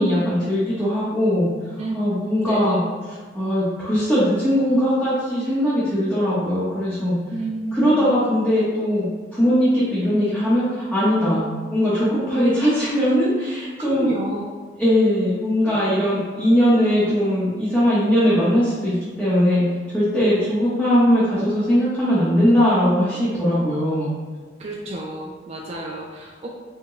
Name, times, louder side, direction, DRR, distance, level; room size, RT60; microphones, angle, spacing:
voice 1, 0.0-1.5 1.9-2.8 3.3-7.1 7.7-9.1 9.4-11.4 11.7-14.1 14.8-19.6 19.9-24.1, equal, 5° left, -13 dB, 0.8 m, -20 dB
voice 2, 2.2-2.8 7.3-8.1 13.9-14.4 15.7-15.8 24.6-26.5, right 2 dB, 35° right, -2 dB, 0.3 m, -30 dB
4.5 x 2.1 x 3.0 m, 1.5 s
head